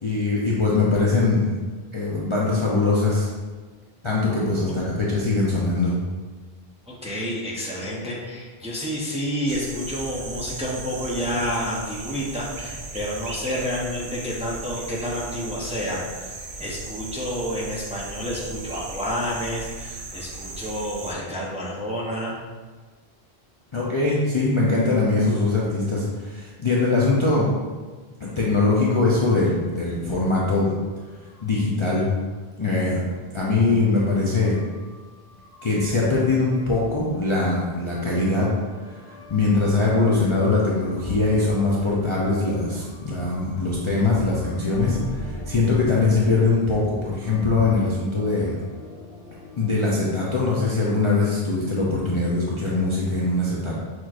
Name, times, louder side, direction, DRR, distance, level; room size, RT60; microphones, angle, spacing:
voice 1, 0.0-1.5 1.9-3.3 4.0-5.9 23.7-27.5 28.2-30.7 31.4-32.0 32.6-33.0 33.3-34.6 35.6-38.5 38.8-48.6 49.6-53.8, left 3 dB, 40° left, -6 dB, 0.5 m, -22 dB
voice 2, 6.9-22.4, equal, 10° right, -4 dB, 0.5 m, -29 dB
sound 1, 9.5-21.1, right 3 dB, 80° right, 0.9 m, -37 dB
sound 2, 30.9-32.0 32.2-32.3 33.1-33.2 34.3-49.7, equal, 65° left, 0.9 m, -41 dB
6.1 x 3.0 x 2.4 m, 1.4 s
omnidirectional pair, 1.1 m